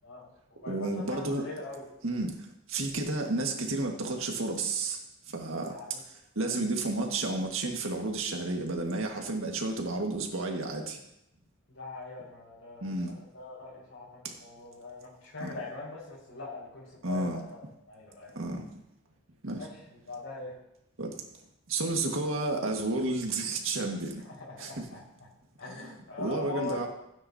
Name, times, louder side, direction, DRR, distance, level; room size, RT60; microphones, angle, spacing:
voice 1, 0.0-1.9 5.6-6.0 6.4-6.5 11.7-17.6 17.9-18.3 19.6-20.5 24.2-25.3 25.6-26.9, left 3 dB, 80° left, -5 dB, 4.9 m, -42 dB
voice 2, 0.7-1.4 2.0-2.3 2.7-5.0 5.3-5.7 6.3-11.0 12.8-13.1 14.2-14.3 15.4-15.5 17.0-17.4 18.3-18.6 19.4-19.6 21.0-21.1 21.7-24.2 24.6-24.8 25.7-26.9, right 2 dB, 85° right, 2 dB, 1.7 m, -31 dB
16.0 x 9.4 x 2.8 m, 0.82 s
head